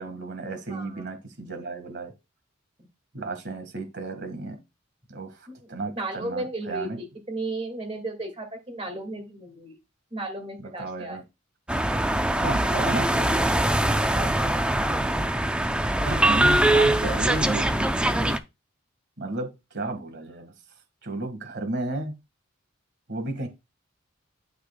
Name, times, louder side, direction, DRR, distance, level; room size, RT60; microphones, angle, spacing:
voice 1, 0.0-2.1 3.1-4.6 5.1-5.3 5.7-7.0 10.6-11.2 12.4-13.5 16.1-18.0 19.2-20.5 21.0-22.1 23.1-23.5, right 2 dB, 55° right, 1.6 m, -33 dB
voice 2, 0.7-1.1 5.5-5.6 6.0-9.8 10.1-11.2 14.0-15.3, right 2 dB, 30° right, 2.0 m, -35 dB
sound 1, 11.7-18.4, right 1 dB, 5° right, 0.4 m, -22 dB
12.0 x 4.8 x 2.2 m
head